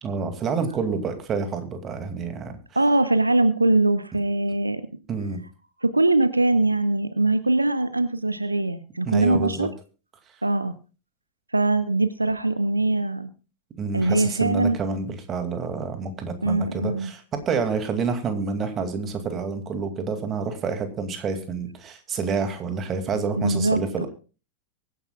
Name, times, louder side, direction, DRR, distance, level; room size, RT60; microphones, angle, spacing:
voice 1, 0.0-2.6 5.1-5.4 9.1-9.7 13.8-24.1, right 5 dB, 25° right, 7 dB, 2.4 m, -28 dB
voice 2, 2.8-4.8 5.8-9.7 10.4-10.7 11.5-13.3 13.9-14.8 16.4-17.1 23.4-24.1, right 2 dB, 85° right, 12 dB, 0.8 m, -22 dB
24.0 x 10.0 x 2.4 m, 0.35 s
figure-of-eight pair, 90°, 0 cm